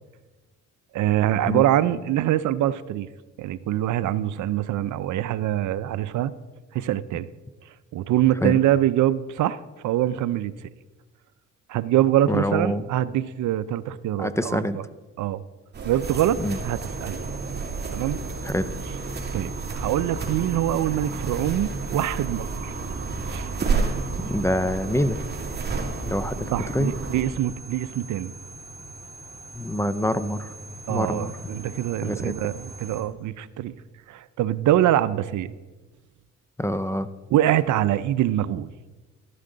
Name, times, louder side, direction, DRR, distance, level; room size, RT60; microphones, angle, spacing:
voice 1, 0.9-3.1 3.4-6.3 6.7-7.3 7.9-10.5 11.7-14.6 15.2-15.4 15.8-17.2 17.9-18.2 19.3-22.7 23.3-23.5 26.5-28.3 30.9-33.7 34.1-35.5 37.3-38.7, right 12 dB, 75° right, 16 dB, 0.6 m, -24 dB
voice 2, 12.3-12.9 14.2-14.8 16.4-16.6 18.4-18.7 24.3-25.2 26.0-26.9 29.5-30.5 30.9-31.3 32.0-32.3 36.6-37.1, left 1 dB, 10° left, 13 dB, 0.6 m, -25 dB
sound 1, 15.7-27.2, right 4 dB, 35° right, 2.7 m, -31 dB
sound 2, 16.0-33.0, right 2 dB, 10° right, 3.9 m, -40 dB
13.0 x 11.0 x 3.9 m, 1.2 s
cardioid pair, 90°, 30 cm